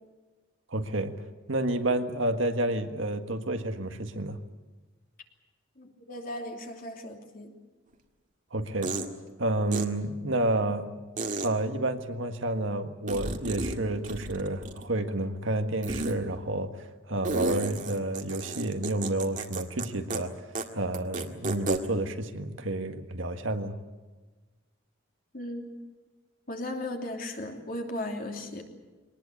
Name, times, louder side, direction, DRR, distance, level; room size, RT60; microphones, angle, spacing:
voice 1, 0.7-1.1 1.5-4.4 8.5-8.9 9.4-10.9 11.4-20.3 20.7-23.7, right 2 dB, 75° right, 6 dB, 1.7 m, -30 dB
voice 2, 5.8-7.5 25.3-25.7 26.5-28.6, left 1 dB, 45° left, 2 dB, 3.0 m, -36 dB
sound 1, 7.9-8.0 8.8-9.1 9.7-9.8 11.2-11.5 13.1-13.8 14.0-14.9 15.8-16.2 17.2-19.9 20.1-20.2 20.6-20.7 20.9-21.8, right 3 dB, 40° right, 1.9 m, -32 dB
23.0 x 19.5 x 8.5 m, 1.3 s
head